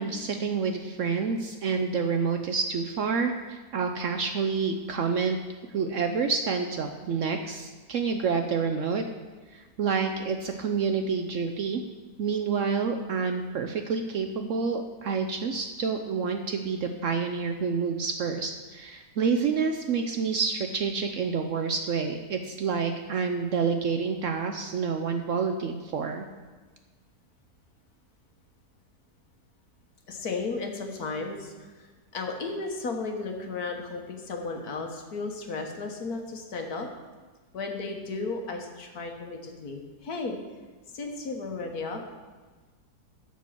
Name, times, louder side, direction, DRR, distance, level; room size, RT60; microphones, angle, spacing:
voice 1, 0.0-5.4 5.7-9.0 9.5-11.8 12.2-26.3, right 5 dB, 65° right, 6 dB, 0.8 m, -28 dB
voice 2, 30.1-31.9 32.1-36.9 37.5-40.4 40.9-42.0, left 3 dB, 65° left, 3 dB, 1.6 m, -34 dB
12.5 x 4.5 x 7.2 m, 1.3 s
omnidirectional pair, 1.8 m